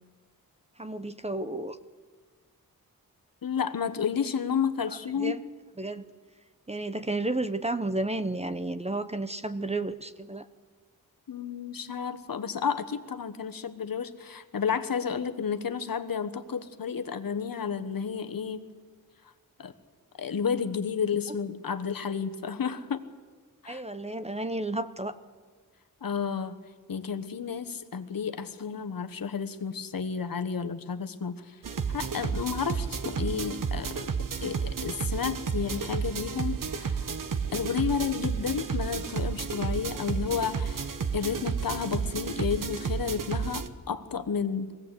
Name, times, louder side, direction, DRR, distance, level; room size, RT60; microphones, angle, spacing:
voice 1, 0.8-1.8 5.2-5.4 5.8-6.0 6.7-10.5 23.6-25.2, right 2 dB, 20° right, 11 dB, 0.7 m, -32 dB
voice 2, 3.4-5.4 11.3-18.7 19.6-19.7 20.2-23.0 23.6-23.8 26.0-26.6 26.9-31.6 31.9-34.1 34.4-37.1 37.5-44.8, left 6 dB, 70° left, 8 dB, 1.2 m, -31 dB
sound 1, 31.6-43.7, right 6 dB, 60° right, 1.0 m, -32 dB
22.5 x 17.0 x 8.2 m, 1.5 s
wide cardioid pair, 125°, 36 cm